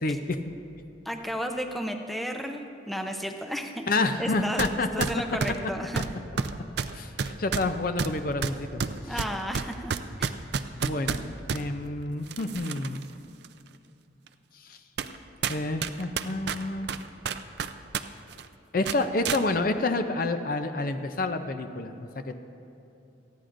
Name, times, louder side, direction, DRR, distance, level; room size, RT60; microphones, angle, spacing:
voice 1, 0.0-0.4 3.9-5.1 6.9-9.2 10.8-13.0 14.5-14.8 15.5-16.9 18.7-22.4, left 2 dB, 45° left, 8 dB, 0.5 m, -29 dB
voice 2, 1.1-3.9 4.2-6.0 9.1-9.9 10.2-10.3, equal, ahead, 4 dB, 0.6 m, -33 dB
sound 1, 4.6-4.7 5.0-11.6 12.3-13.0 13.4-13.5 14.3-14.4 15.0-15.2 15.4-18.0 18.3-18.5 18.8-19.4, right 6 dB, 55° right, 0.4 m, -30 dB
28.5 x 10.0 x 2.6 m, 2.8 s
head